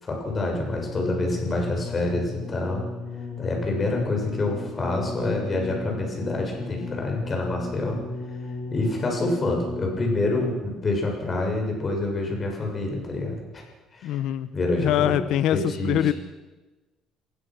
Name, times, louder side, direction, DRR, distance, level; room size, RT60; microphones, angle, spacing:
voice 1, 0.0-2.8 3.4-8.0 8.7-13.6 13.9-14.2 14.5-15.2 15.5-16.1, left 2 dB, 30° left, 1 dB, 6.8 m, -27 dB
sound 1, 0.5-10.7 11.5-11.6, left 4 dB, 50° left, 3.7 m, -35 dB
voice 2, 14.0-14.5 14.8-15.6 15.8-16.1, left 12 dB, 70° left, 13 dB, 1.0 m, -23 dB
28.5 x 16.0 x 6.2 m, 1.2 s
cardioid pair, 130°, 0 cm